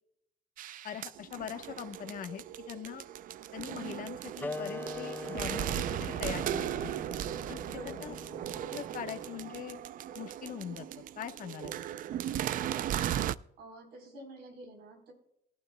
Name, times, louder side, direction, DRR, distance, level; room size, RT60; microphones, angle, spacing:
sound 1, 0.6-13.4, right 11 dB, 55° right, 0.4 m, -37 dB
voice 1, 0.8-3.0 3.5-6.9 7.5-8.2 8.7-9.8 10.1-11.8, left 9 dB, 55° left, 7 dB, 1.1 m, -42 dB
sound 2, 4.4-9.5, left 3 dB, 10° left, 0.4 m, -43 dB
voice 2, 7.6-8.2 13.6-15.1, right 1 dB, 75° right, 4 dB, 3.9 m, -48 dB
21.0 x 11.5 x 2.2 m, 0.80 s
cardioid pair, 110°, 17 cm